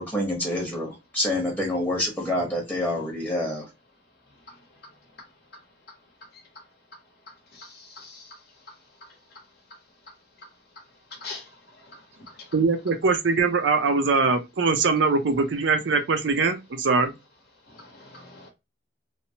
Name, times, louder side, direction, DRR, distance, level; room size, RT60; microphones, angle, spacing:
voice 1, 0.0-3.7, left 1 dB, 10° left, 0.8 m, -27 dB
voice 2, 7.5-8.4 11.1-11.5 11.8-12.0 12.4-12.5 17.7-18.5, left 3 dB, 60° left, 0.8 m, -42 dB
voice 3, 12.5-17.1, right 4 dB, 80° right, 0.5 m, -22 dB
3.1 x 2.0 x 2.7 m
head